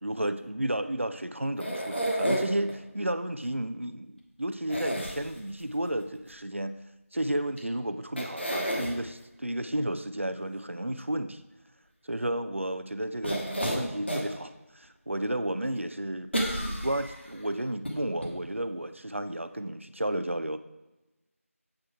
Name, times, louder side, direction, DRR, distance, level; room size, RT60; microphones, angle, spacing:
voice 1, 0.0-6.8 7.1-11.4 12.0-16.3 16.6-20.6, right 1 dB, 55° right, 11 dB, 0.4 m, -32 dB
sound 1, 1.6-2.7 4.7-5.6 7.6-7.7 8.2-8.9 13.2-14.3 14.8-14.9 16.3-17.3 17.8-17.9 18.2-18.3, equal, 50° left, 1.2 m, -30 dB
7.7 x 3.6 x 4.6 m, 1.0 s
figure-of-eight pair, 180°, 8 cm